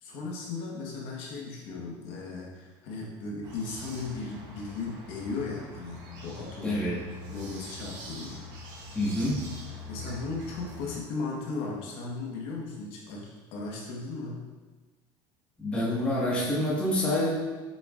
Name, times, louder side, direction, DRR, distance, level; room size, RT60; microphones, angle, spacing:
voice 1, 0.0-6.8 7.3-8.4 9.9-14.4, left 3 dB, 55° left, -3 dB, 1.4 m, -36 dB
sound 1, 3.4-11.0, left 1 dB, 45° right, 1.7 m, -44 dB
voice 2, 6.6-7.0 8.9-9.5 15.6-17.3, left 1 dB, 10° left, -7 dB, 1.7 m, -27 dB
8.3 x 6.8 x 2.5 m, 1.3 s
cardioid pair, 175°, 11 cm